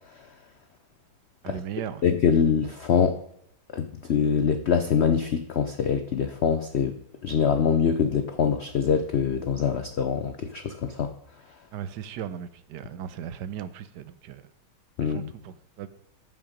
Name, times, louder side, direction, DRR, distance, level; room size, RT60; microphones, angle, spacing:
voice 1, 1.4-2.0 11.7-14.4 15.0-15.9, right 9 dB, 75° right, 13 dB, 1.2 m, -37 dB
voice 2, 2.0-3.2 3.7-7.0 7.2-11.1 15.0-15.3, left 7 dB, 75° left, 9 dB, 0.6 m, -24 dB
14.5 x 5.8 x 5.1 m, 0.75 s
omnidirectional pair, 2.0 m